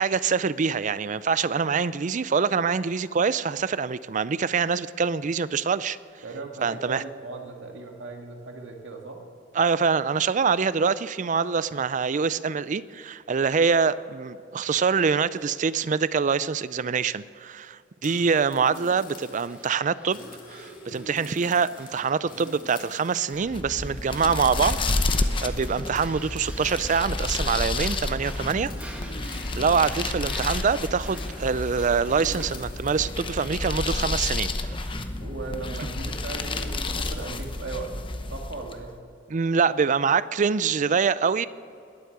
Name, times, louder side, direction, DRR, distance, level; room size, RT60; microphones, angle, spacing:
voice 1, 0.0-6.0 6.6-7.0 9.5-20.2 20.5-24.8 25.4-28.7 29.5-34.8 39.3-41.5, right 5 dB, 40° right, 17 dB, 0.4 m, -25 dB
voice 2, 6.2-9.2 29.6-29.9 35.2-37.9 38.3-39.0, right 3 dB, 70° right, 1 dB, 2.2 m, -38 dB
sound 1, 18.0-19.7 20.0-23.5 24.1-25.4 26.2-26.3 26.8-26.9 27.2-27.5 28.6-30.3 31.0-33.3 34.7-34.9 36.3-37.6, left 2 dB, 45° left, 2.5 m, -45 dB
Breathing, 18.8-33.8, right 1 dB, 5° right, 2.0 m, -47 dB
sound 2, 23.4-38.9, left 2 dB, 25° left, 0.8 m, -30 dB
21.0 x 8.3 x 8.0 m, 2.5 s
head